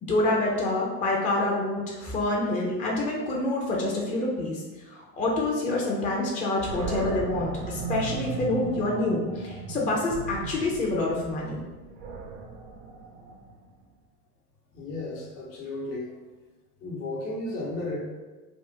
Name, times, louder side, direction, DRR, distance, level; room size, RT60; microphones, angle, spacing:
voice 1, 0.0-4.6 4.9-11.6, left 2 dB, 20° left, -3 dB, 0.4 m, -27 dB
Animal, 6.6-13.7, right 4 dB, 60° right, 0.6 m, -36 dB
voice 2, 14.7-16.1 16.8-18.0, left 2 dB, 80° left, -4 dB, 1.0 m, -34 dB
3.4 x 2.1 x 2.7 m, 1.2 s
hypercardioid pair, 90°, 46 cm